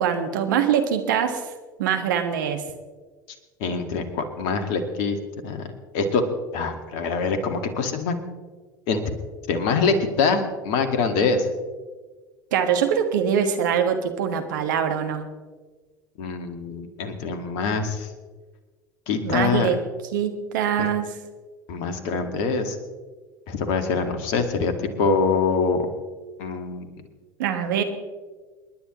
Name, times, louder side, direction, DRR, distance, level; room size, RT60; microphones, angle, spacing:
voice 1, 0.0-1.4 1.8-2.6 12.5-15.3 19.2-19.8 20.1-21.1 27.4-27.8, right 8 dB, 70° right, 6 dB, 1.5 m, -23 dB
voice 2, 3.6-5.2 5.4-5.7 5.9-6.2 6.5-8.1 8.9-9.0 9.5-11.5 16.2-18.1 19.1-19.7 20.8-20.9 21.7-22.8 23.5-25.9 26.4-26.9, left 4 dB, 55° left, 7 dB, 1.9 m, -24 dB
28.0 x 10.5 x 3.1 m, 1.4 s
figure-of-eight pair, 75°, 11 cm